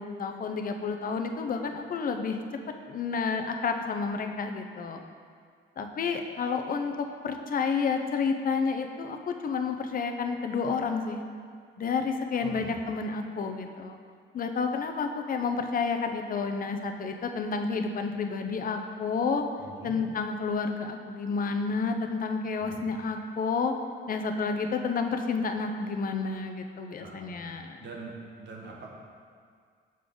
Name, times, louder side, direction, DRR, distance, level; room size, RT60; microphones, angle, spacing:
voice 1, 0.0-2.4 2.9-5.0 5.8-6.9 7.2-11.2 11.8-14.0 14.3-19.4 19.8-23.7 24.1-27.9, left 5 dB, 45° left, 5 dB, 0.6 m, -30 dB
voice 2, 12.4-12.8 19.6-20.0 22.6-22.8 27.0-28.9, right 4 dB, 65° right, -1 dB, 1.3 m, -44 dB
6.6 x 3.8 x 5.1 m, 2.1 s
cardioid pair, 90°, 20 cm